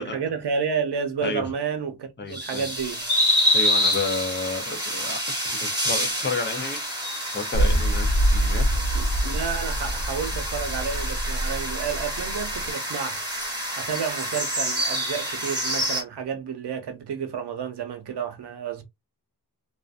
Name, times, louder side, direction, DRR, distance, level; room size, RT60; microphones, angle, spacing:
voice 1, 0.0-3.0 8.9-13.2 13.8-18.8, right 6 dB, 80° right, 0.7 m, -30 dB
voice 2, 2.2-2.7 3.5-5.2 5.5-6.8 7.3-8.6, left 3 dB, 30° left, 0.5 m, -31 dB
sound 1, 2.3-16.0, equal, 10° right, 1.2 m, -27 dB
sound 2, 7.5-12.7, right 1 dB, 90° left, 0.7 m, -25 dB
2.5 x 2.1 x 2.4 m
wide cardioid pair, 115°, 40 cm